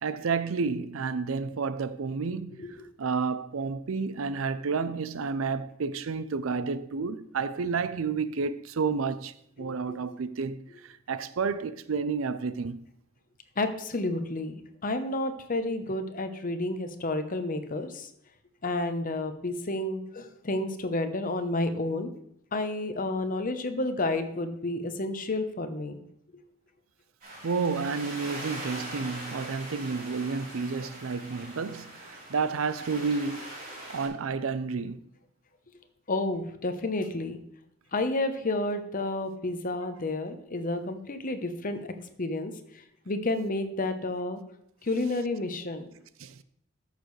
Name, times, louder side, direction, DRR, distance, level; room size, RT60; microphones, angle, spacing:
voice 1, 0.0-12.8 27.4-33.4 33.9-35.1 46.2-46.4, right 5 dB, 85° right, 0.5 m, -31 dB
voice 2, 9.6-10.0 13.6-18.1 18.6-22.1 22.5-26.0 36.1-37.4 37.9-41.8 42.2-42.5 43.1-44.4 44.8-45.8, left 2 dB, 40° left, 0.9 m, -30 dB
sound 1, 27.2-34.1, right 1 dB, 45° right, 3.7 m, -41 dB
13.5 x 6.7 x 3.2 m
head